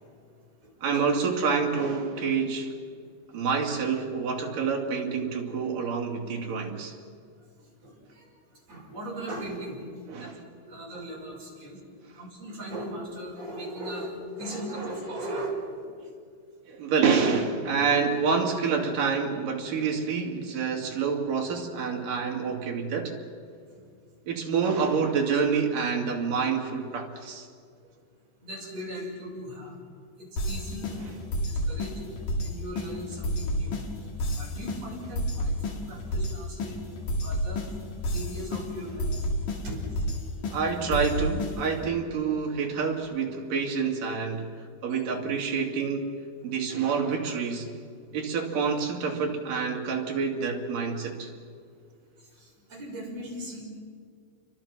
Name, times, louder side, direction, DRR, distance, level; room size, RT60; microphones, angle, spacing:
voice 1, 0.8-2.7 3.3-6.9 10.1-10.4 16.7-23.2 24.3-27.5 31.0-31.1 40.5-44.5 44.8-46.1 46.4-47.7 48.1-51.3, right 5 dB, 60° right, 1 dB, 4.1 m, -27 dB
voice 2, 7.8-8.2 8.7-9.8 10.2-10.3 10.7-11.8 12.1-15.6 28.4-29.8 30.2-31.1 31.5-31.9 32.4-33.8 34.3-36.8 37.1-37.6 38.1-39.1 39.6-39.8 40.4-40.6 44.9-45.0 52.4-53.6, right 1 dB, 40° right, -4 dB, 7.4 m, -38 dB
sound 1, 30.4-41.9, equal, 60° left, 3.8 m, -31 dB
29.5 x 24.0 x 6.1 m, 2.2 s
omnidirectional pair, 4.4 m